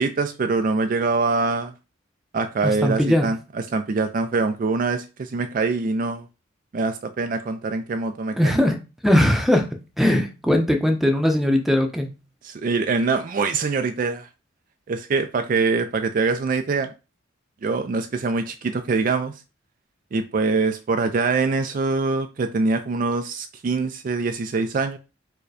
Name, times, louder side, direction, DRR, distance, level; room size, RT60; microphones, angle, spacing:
voice 1, 0.0-1.7 2.3-3.4 3.7-6.3 6.7-8.5 12.4-14.3 14.9-16.9 17.6-19.3 20.1-25.0, right 4 dB, 45° right, 0.3 m, -24 dB
voice 2, 2.6-3.3 8.4-8.8 9.0-9.7 10.0-12.1, left 1 dB, ahead, 0.6 m, -19 dB
4.7 x 2.2 x 4.7 m
head